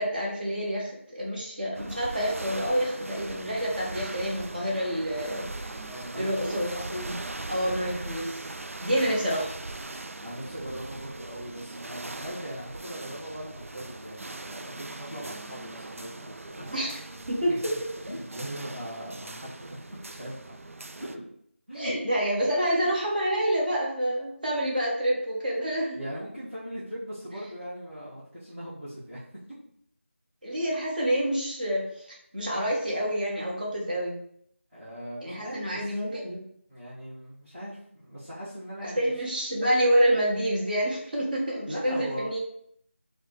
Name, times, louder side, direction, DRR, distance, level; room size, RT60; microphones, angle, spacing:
voice 1, 0.0-5.7 6.2-7.2 7.5-8.4 8.8-9.5 16.7-17.0 17.3-17.7 21.7-26.0 30.4-34.2 35.2-36.4 38.8-42.4, equal, 40° right, -3 dB, 1.1 m, -28 dB
sound 1, 1.7-21.2, right 2 dB, 80° right, 0.4 m, -40 dB
voice 2, 5.8-6.8 10.2-16.6 17.5-17.6 18.1-19.8 20.1-20.5 20.9-21.2 21.7-21.9 25.9-29.3 34.7-36.0 36.7-39.1 41.7-42.3, equal, ahead, -21 dB, 0.5 m, -39 dB
5.1 x 2.1 x 3.1 m, 0.67 s
figure-of-eight pair, 170°, 7 cm